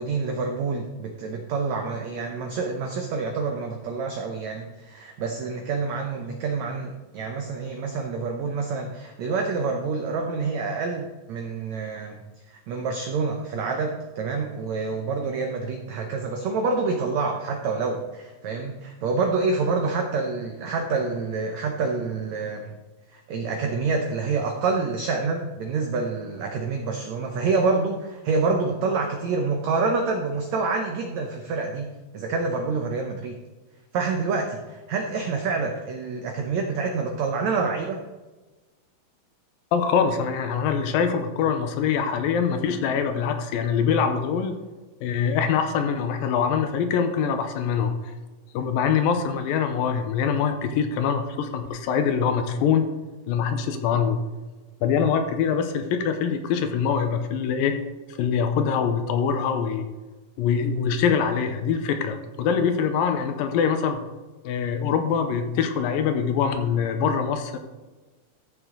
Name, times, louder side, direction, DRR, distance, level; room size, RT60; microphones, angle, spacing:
voice 1, 0.0-12.2 12.5-22.7 23.1-31.9 32.1-33.4 33.9-38.0, right 4 dB, 90° right, 3 dB, 1.5 m, -27 dB
voice 2, 39.7-44.6 45.0-48.1 48.5-52.9 53.3-54.2 54.8-57.8 58.2-59.9 60.4-64.0 64.4-67.6, left 7 dB, 80° left, 7 dB, 2.4 m, -24 dB
13.5 x 6.4 x 3.8 m, 1.2 s
omnidirectional pair, 4.3 m